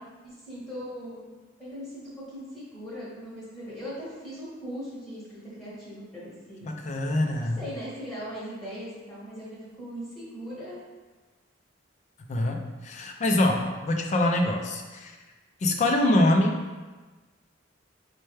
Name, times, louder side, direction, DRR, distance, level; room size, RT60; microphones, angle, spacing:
voice 1, 0.2-1.3 1.6-6.7 7.6-10.8, equal, 10° left, -11 dB, 1.0 m, -39 dB
voice 2, 6.6-7.6 12.3-15.2 15.6-16.8, left 1 dB, 40° left, 3 dB, 0.3 m, -24 dB
4.3 x 2.1 x 3.2 m, 1.3 s
head